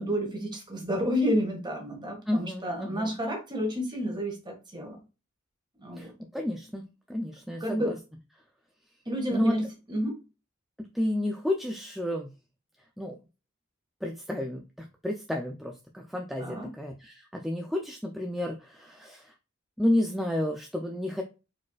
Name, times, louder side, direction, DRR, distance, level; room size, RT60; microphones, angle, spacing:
voice 1, 0.0-5.0 5.8-6.1 7.6-7.9 9.1-10.2 16.4-16.7, equal, 20° right, 1 dB, 1.6 m, -30 dB
voice 2, 2.3-3.2 6.0-6.8 7.1-8.0 9.3-9.6 10.9-12.3 13.0-13.2 14.0-19.3 19.8-21.2, left 1 dB, ahead, 2 dB, 0.4 m, -31 dB
4.8 x 4.3 x 2.3 m, 0.30 s
head